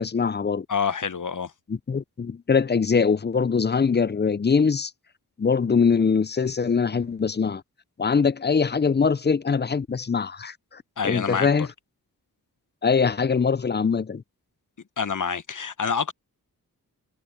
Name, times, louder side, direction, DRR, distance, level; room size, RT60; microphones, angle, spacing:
voice 1, 0.0-0.7 1.7-4.9 5.4-7.6 8.0-11.7 12.8-14.2, left 5 dB, 30° left, 0.6 m, -22 dB
voice 2, 0.7-1.5 11.0-11.7 15.0-16.1, left 6 dB, 55° left, 1.3 m, -27 dB
cardioid pair, 40°, 38 cm